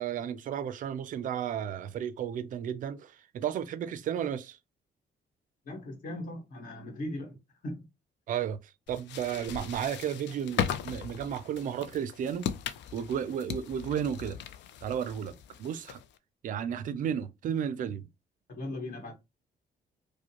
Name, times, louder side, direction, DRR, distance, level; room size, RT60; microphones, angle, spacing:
voice 1, 0.0-4.6 8.3-8.6 8.9-12.5 12.9-14.4 14.8-16.0 16.4-18.1, right 9 dB, 50° right, 0.4 m, -33 dB
voice 2, 5.6-7.4 7.6-7.9 18.5-19.1, left 1 dB, 50° left, 1.4 m, -38 dB
sound 1, 8.9-16.2, left 9 dB, 85° left, 0.4 m, -38 dB
4.9 x 2.1 x 2.9 m
cardioid pair, 180°, 18 cm